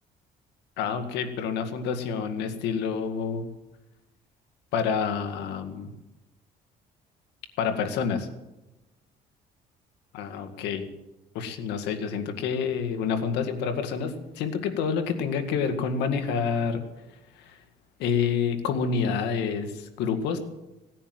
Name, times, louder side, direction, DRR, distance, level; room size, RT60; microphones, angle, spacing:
voice 1, 0.8-3.5 4.7-5.9 7.6-8.3 10.1-10.8 11.3-16.8 17.4-17.6 18.0-20.4, left 6 dB, 90° left, 7 dB, 2.0 m, -28 dB
18.0 x 10.0 x 7.8 m, 1.0 s
cardioid pair, 110°, 17 cm